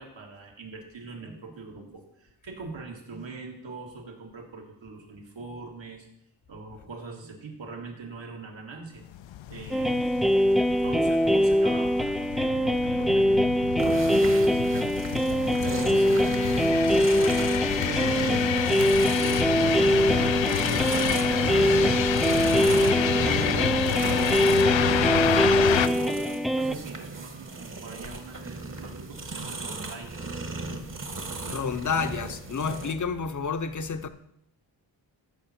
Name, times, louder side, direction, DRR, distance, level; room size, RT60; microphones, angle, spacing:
voice 1, 0.0-6.0 6.5-9.0 9.5-10.3 10.8-18.8 19.2-30.4, right 4 dB, 75° right, 2.0 m, -42 dB
sound 1, 9.1-25.9, left 11 dB, 80° left, 0.6 m, -29 dB
sound 2, 9.7-26.7, equal, ahead, 0.3 m, -23 dB
sound 3, 13.8-32.9, right 3 dB, 45° right, 1.4 m, -35 dB
voice 2, 31.3-34.1, left 5 dB, 40° left, 0.8 m, -30 dB
14.0 x 6.3 x 4.3 m
cardioid pair, 75°, 45 cm